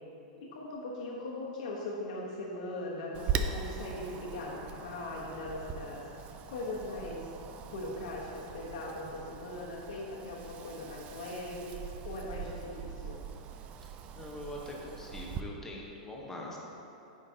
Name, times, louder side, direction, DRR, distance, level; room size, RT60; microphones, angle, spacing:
voice 1, 0.4-6.1 6.5-7.3 7.6-13.2, left 2 dB, 70° left, -5 dB, 1.1 m, -40 dB
Wind, 3.1-15.4, right 6 dB, 30° right, 0.3 m, -41 dB
voice 2, 14.1-16.6, left 1 dB, 10° left, -3 dB, 1.0 m, -43 dB
9.2 x 5.2 x 2.8 m, 2.9 s
hypercardioid pair, 140°, 4 cm